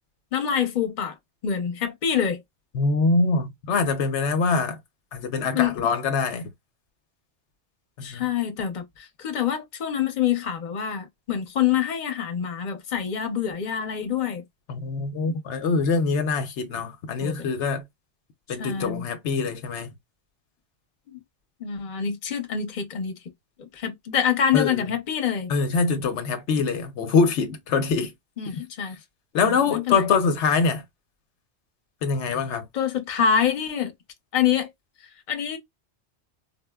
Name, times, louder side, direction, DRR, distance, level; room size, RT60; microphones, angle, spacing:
voice 1, 0.3-1.2 1.4-2.4 5.5-5.7 8.0-14.4 17.2-17.5 18.6-19.0 21.1-21.2 21.6-23.2 23.7-25.5 28.4-29.0 29.3-30.1 32.7-33.9 34.3-34.7 35.3-35.6, left 8 dB, 50° left, 0.8 m, -26 dB
voice 2, 2.7-4.8 5.1-6.5 8.0-8.3 14.7-17.8 18.5-19.9 24.5-24.7 25.5-28.1 29.3-30.8 32.0-32.7, left 4 dB, 85° left, 1.0 m, -24 dB
4.1 x 2.1 x 2.2 m
omnidirectional pair, 1.1 m